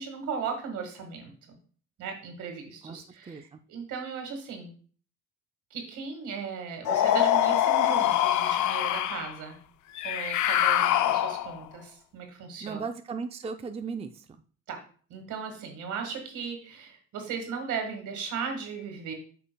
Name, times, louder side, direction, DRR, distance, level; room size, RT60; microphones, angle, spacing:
voice 1, 0.0-1.3 2.0-4.7 5.7-9.6 10.0-12.8 14.7-14.8 15.1-19.1, right 6 dB, 80° right, 4 dB, 1.8 m, -37 dB
voice 2, 3.3-3.6 12.6-14.3, right 5 dB, 20° right, 7 dB, 0.4 m, -36 dB
sound 1, 6.9-9.3 10.0-11.6, left 11 dB, 75° left, 0.5 m, -24 dB
8.3 x 5.5 x 2.2 m, 0.43 s
cardioid pair, 90°, 30 cm